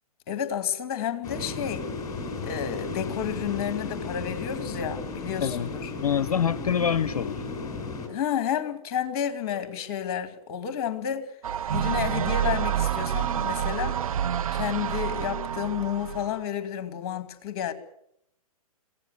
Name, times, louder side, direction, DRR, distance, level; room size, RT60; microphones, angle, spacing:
voice 1, 0.3-1.9 2.4-5.9 8.1-11.3 11.7-14.0 14.5-17.7, left 9 dB, 40° left, 10 dB, 2.4 m, -31 dB
sound 1, 1.2-8.1, left 3 dB, 20° left, 6.1 m, -34 dB
voice 2, 6.0-7.4, left 8 dB, 65° left, 18 dB, 0.8 m, -25 dB
sound 2, 11.4-16.4, right 9 dB, 65° right, 0.8 m, -28 dB
24.5 x 17.0 x 7.9 m, 0.75 s
hypercardioid pair, 125°, 19 cm